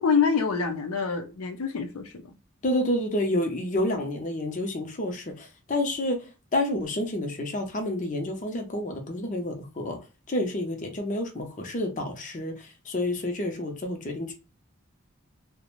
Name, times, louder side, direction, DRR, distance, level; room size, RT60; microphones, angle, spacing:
voice 1, 0.0-2.2, left 5 dB, 85° left, 0.5 m, -26 dB
voice 2, 2.6-6.2 6.5-10.0 10.3-12.5 12.9-14.3, left 1 dB, 35° left, 0.6 m, -29 dB
2.4 x 2.1 x 3.0 m
head